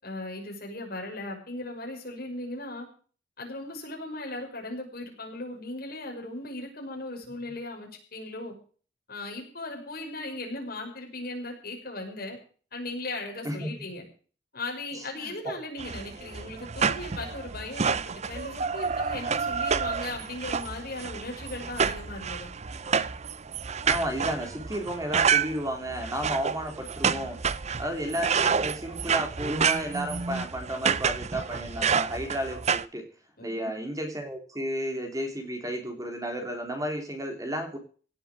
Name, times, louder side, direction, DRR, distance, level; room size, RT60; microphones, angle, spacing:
voice 1, 0.0-2.9 3.4-8.5 9.1-12.4 12.7-14.0 14.5-22.5 33.4-33.7, left 2 dB, 55° left, 1 dB, 5.8 m, -37 dB
voice 2, 14.9-15.6 23.8-27.4 27.8-33.1 33.4-37.8, equal, 20° right, 4 dB, 3.2 m, -33 dB
sound 1, 15.8-32.8, right 6 dB, 40° right, 0.6 m, -29 dB
17.5 x 7.9 x 7.5 m, 0.40 s
head